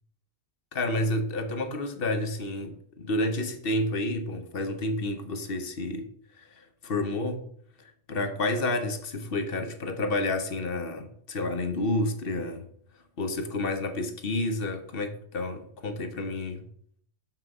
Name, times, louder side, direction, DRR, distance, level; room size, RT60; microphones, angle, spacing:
voice 1, 0.7-6.1 6.4-7.5 7.8-12.7 13.2-16.7, left 2 dB, 60° left, 1.1 m, -30 dB
6.7 x 5.9 x 4.8 m
omnidirectional pair, 1.1 m